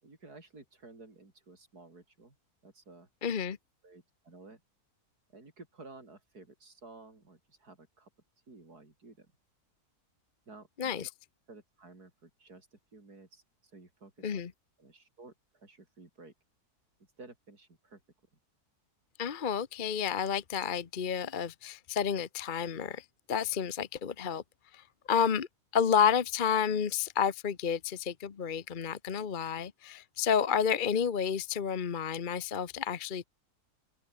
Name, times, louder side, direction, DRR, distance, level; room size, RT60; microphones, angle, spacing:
voice 1, 0.0-2.4 2.6-3.1 3.8-4.6 5.3-8.1 8.5-9.3 10.5-11.1 11.5-14.5 14.8-16.3 17.2-18.0, right 3 dB, 75° right, 5.4 m, -54 dB
voice 2, 3.2-3.6 10.8-11.1 14.2-14.5 19.2-24.4 24.7-25.5 25.7-33.2, left 7 dB, 40° left, 0.9 m, -30 dB
open air
omnidirectional pair, 1.6 m